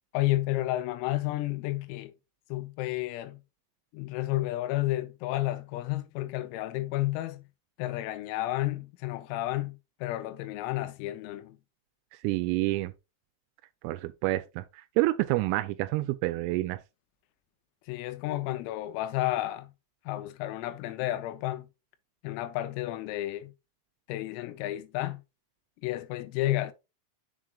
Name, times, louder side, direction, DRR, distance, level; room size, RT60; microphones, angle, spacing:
voice 1, 0.1-2.1 2.5-3.4 3.9-7.4 7.8-11.6 17.9-19.7 20.1-21.7 22.2-23.5 24.1-25.2 25.8-26.7, left 16 dB, 85° left, 3.4 m, -31 dB
voice 2, 12.2-12.9 13.8-14.6 15.0-16.8, right 18 dB, 90° right, 3.2 m, -28 dB
7.6 x 7.4 x 2.3 m
omnidirectional pair, 5.9 m